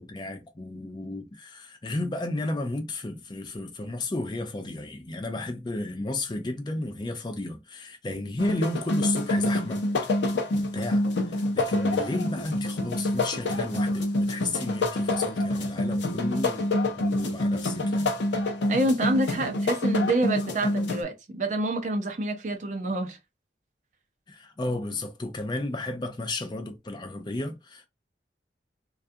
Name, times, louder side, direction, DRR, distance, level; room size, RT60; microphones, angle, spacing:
voice 1, 0.0-9.8 10.5-16.7 17.0-18.1 24.3-27.9, left 2 dB, 25° left, 0.4 m, -33 dB
sound 1, 8.4-21.0, left 1 dB, 75° left, 0.6 m, -27 dB
voice 2, 18.7-23.2, right 2 dB, 40° right, 0.5 m, -27 dB
2.4 x 2.2 x 2.6 m
head